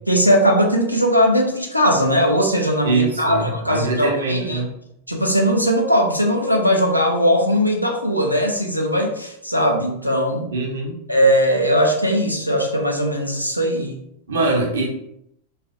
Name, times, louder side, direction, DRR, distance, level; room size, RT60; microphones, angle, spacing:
voice 1, 0.1-4.6 5.1-10.5 11.1-14.0, equal, 90° left, 1 dB, 0.4 m, -19 dB
voice 2, 2.8-4.7 10.5-11.0 14.3-14.9, right 3 dB, 65° right, 0 dB, 0.6 m, -22 dB
2.4 x 2.3 x 2.6 m, 0.78 s
figure-of-eight pair, 90°, 0 cm